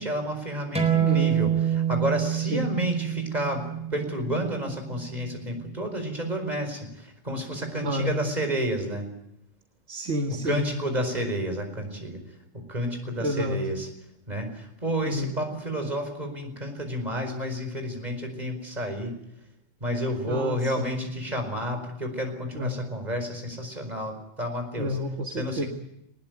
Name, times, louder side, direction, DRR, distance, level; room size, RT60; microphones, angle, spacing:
voice 1, 0.0-9.1 10.4-12.2 12.5-13.9 14.3-19.1 19.8-24.9 25.4-25.7, equal, 35° right, 5 dB, 4.9 m, -30 dB
sound 1, 0.8-5.9, right 9 dB, 5° right, 4.4 m, -27 dB
voice 2, 1.0-1.4 2.4-2.7 7.8-8.2 9.9-10.7 13.2-13.6 15.0-15.4 20.3-21.0 22.6-22.8 24.8-25.6, left 1 dB, 70° right, 4 dB, 1.9 m, -30 dB
20.0 x 19.5 x 9.4 m, 0.82 s
omnidirectional pair, 1.3 m